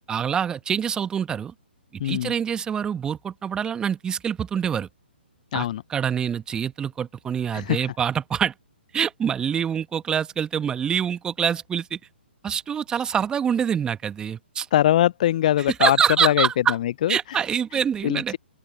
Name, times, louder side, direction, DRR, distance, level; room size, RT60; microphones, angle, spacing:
voice 1, 0.1-1.5 1.9-4.9 5.5-8.5 8.9-12.0 12.4-14.7 15.8-16.7 17.1-18.4, right 8 dB, 15° right, 1.5 m, -25 dB
voice 2, 2.0-2.3 5.5-5.8 7.5-7.8 14.7-17.2 18.0-18.4, left 12 dB, 45° left, 0.4 m, -22 dB
open air
figure-of-eight pair, 125°, 6 cm